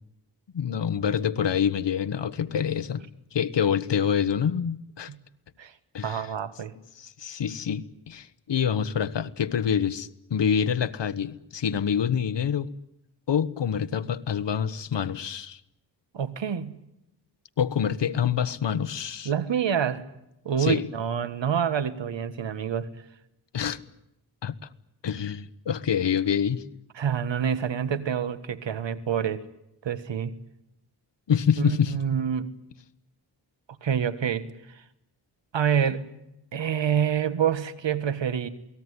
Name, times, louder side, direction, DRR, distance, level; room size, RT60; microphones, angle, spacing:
voice 1, 0.5-3.0 3.3-5.1 5.9-6.3 7.0-12.7 13.3-15.6 17.6-19.3 20.6-20.8 23.5-23.8 24.4-24.5 25.0-26.6 31.3-31.9, left 8 dB, 70° left, 1.3 m, -26 dB
voice 2, 6.0-6.7 16.1-16.8 19.2-20.0 20.4-22.9 26.9-29.4 29.8-30.3 31.6-32.5 33.8-34.5 35.5-36.0 36.5-38.5, right 8 dB, 80° right, 1.7 m, -27 dB
28.0 x 19.5 x 9.8 m
wide cardioid pair, 95°, 44 cm